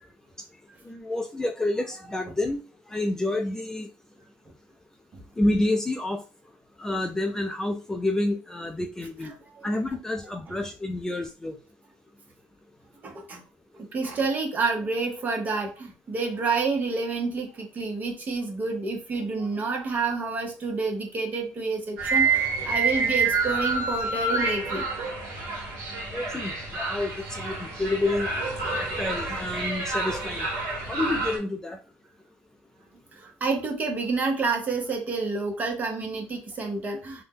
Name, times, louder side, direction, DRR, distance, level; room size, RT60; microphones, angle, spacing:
voice 1, 0.9-2.6 2.9-3.9 5.4-6.2 6.8-9.3 9.6-11.6 26.1-28.3 28.8-30.5 30.9-31.8, left 2 dB, 10° left, 4 dB, 0.3 m, -28 dB
voice 2, 13.0-13.4 13.9-24.8 33.2-37.2, right 4 dB, 35° right, 3 dB, 0.8 m, -29 dB
sound 1, 22.0-31.4, right 4 dB, 60° right, 1.3 m, -28 dB
2.6 x 2.1 x 3.5 m, 0.34 s
cardioid pair, 115°, 5 cm